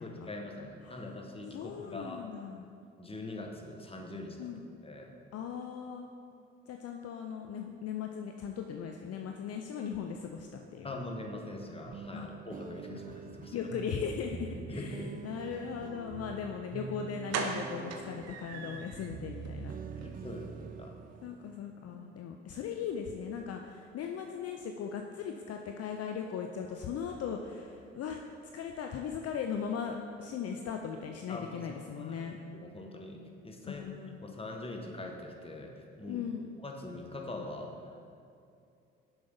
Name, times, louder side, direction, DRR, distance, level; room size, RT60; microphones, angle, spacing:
voice 1, 0.0-2.2 3.0-4.5 4.8-5.2 10.8-13.6 14.5-15.2 20.0-20.9 31.3-31.5 31.9-33.8 34.2-36.3 36.6-38.0, left 2 dB, 20° left, 2 dB, 1.2 m, -43 dB
voice 2, 1.5-2.8 4.4-4.6 5.3-6.1 6.7-11.0 12.1-12.3 13.5-19.7 21.2-28.2 28.5-32.4 33.6-34.3 36.1-36.5, left 7 dB, 50° left, 3 dB, 0.6 m, -38 dB
sound 1, 11.9-21.3, right 6 dB, 30° right, 0.4 m, -45 dB
sound 2, 16.6-16.7 17.3-19.1 19.4-19.5 19.9-20.1 20.3-20.4, right 5 dB, 55° right, 0.8 m, -38 dB
6.9 x 5.4 x 5.3 m, 2.5 s
hypercardioid pair, 45°, 31 cm